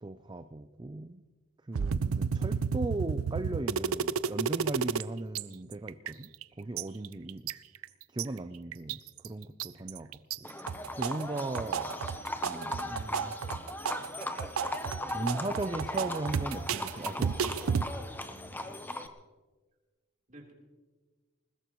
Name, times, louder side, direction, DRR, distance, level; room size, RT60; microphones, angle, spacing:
voice 1, 0.0-1.2 1.7-6.3 6.6-7.5 8.1-10.1 10.4-10.5 11.0-12.0 12.4-13.3 14.1-14.3 15.1-17.4, right 2 dB, 20° right, 10 dB, 0.4 m, -37 dB
sound 1, 1.7-5.0 5.3-5.4 5.7-6.4 6.8-8.2 8.7-9.3 9.6-10.4 10.7-17.8, right 6 dB, 75° right, 0.5 m, -32 dB
Livestock farm animals working animals, 10.4-19.1, left 1 dB, 10° left, 0.8 m, -39 dB
voice 2, 18.1-18.9 20.3-20.5, right 1 dB, 35° right, -2 dB, 3.5 m, -53 dB
20.5 x 20.5 x 3.1 m, 1.3 s
head